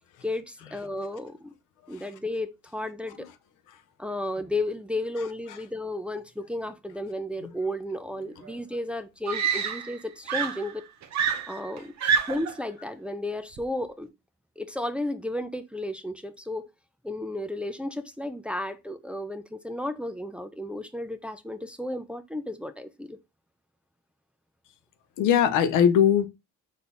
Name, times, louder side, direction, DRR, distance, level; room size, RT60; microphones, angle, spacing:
voice 1, 0.2-1.5 1.9-3.3 4.0-10.8 11.5-11.9 12.3-14.1 14.6-16.7 17.0-23.2, left 1 dB, 5° right, 0.4 m, -33 dB
Screaming, 8.4-8.5 9.3-10.0 10.3-12.6 13.6-13.8, right 7 dB, 65° right, 0.7 m, -27 dB
voice 2, 25.2-26.3, left 8 dB, 90° left, 0.7 m, -21 dB
4.2 x 2.7 x 3.4 m
cardioid pair, 90°, 30 cm